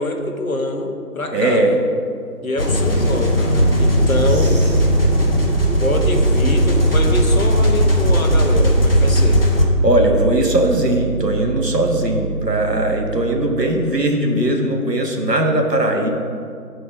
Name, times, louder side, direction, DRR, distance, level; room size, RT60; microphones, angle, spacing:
voice 1, 0.0-1.8 2.4-4.6 5.8-9.4, left 1 dB, 60° left, 4 dB, 1.1 m, -24 dB
voice 2, 1.3-1.7 9.8-16.1, right 1 dB, 90° right, 2 dB, 1.5 m, -19 dB
sound 1, 2.6-9.6, left 1 dB, 35° left, 1.0 m, -17 dB
Piano, 3.4-13.7, right 4 dB, 10° left, 1.8 m, -23 dB
8.6 x 4.3 x 6.8 m, 2.3 s
figure-of-eight pair, 165°, 47 cm